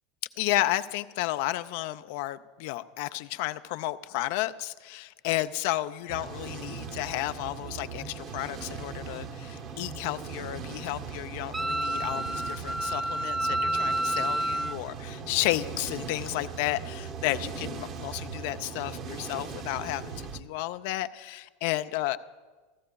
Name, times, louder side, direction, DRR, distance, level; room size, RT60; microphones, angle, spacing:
voice 1, 0.4-22.2, left 16 dB, 60° left, 12 dB, 0.4 m, -32 dB
sound 1, 6.1-20.4, right 6 dB, 45° right, 0.7 m, -39 dB
Wind instrument woodwind instrument, 11.5-14.8, right 1 dB, 5° right, 0.4 m, -29 dB
15.0 x 13.5 x 2.3 m, 1.4 s
hypercardioid pair, 85°, 0 cm